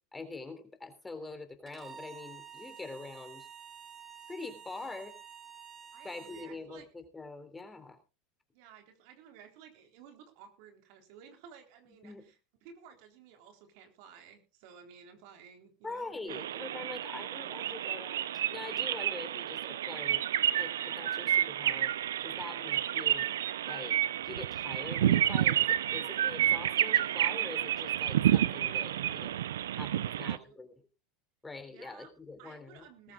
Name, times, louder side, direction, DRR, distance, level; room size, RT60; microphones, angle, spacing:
voice 1, 0.1-3.5 4.3-5.2 6.0-8.0 12.0-12.3 15.8-20.2 20.6-21.9 22.2-23.3 23.6-24.0 24.2-29.4 29.7-30.7 31.4-33.1, left 3 dB, 15° left, 8 dB, 3.4 m, -44 dB
Bowed string instrument, 1.7-6.5, right 7 dB, 30° right, 2.6 m, -50 dB
voice 2, 5.9-6.9 8.5-12.3 12.6-16.7 17.1-17.7 30.0-30.6 31.7-32.1 32.4-33.1, right 7 dB, 65° right, 5 dB, 3.7 m, -55 dB
sound 1, 16.3-30.4, right 11 dB, 85° right, 0.6 m, -30 dB
21.0 x 14.0 x 2.4 m, 0.32 s
hypercardioid pair, 95°, 0 cm